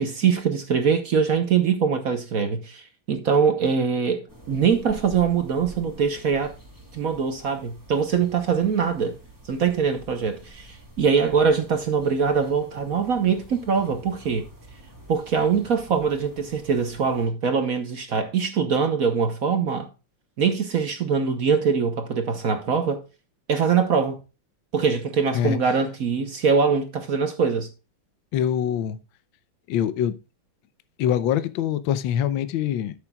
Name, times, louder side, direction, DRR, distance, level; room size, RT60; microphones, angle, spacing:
voice 1, 0.0-6.5 6.9-9.2 9.5-14.5 15.1-19.9 20.4-23.0 23.5-24.2 24.7-27.7, right 6 dB, 55° right, 1.0 m, -23 dB
sound 1, 4.3-17.3, right 1 dB, 10° right, 2.3 m, -47 dB
voice 2, 28.3-29.0 29.7-30.1 31.0-32.9, left 10 dB, 70° left, 1.4 m, -24 dB
13.0 x 7.0 x 2.3 m
omnidirectional pair, 2.4 m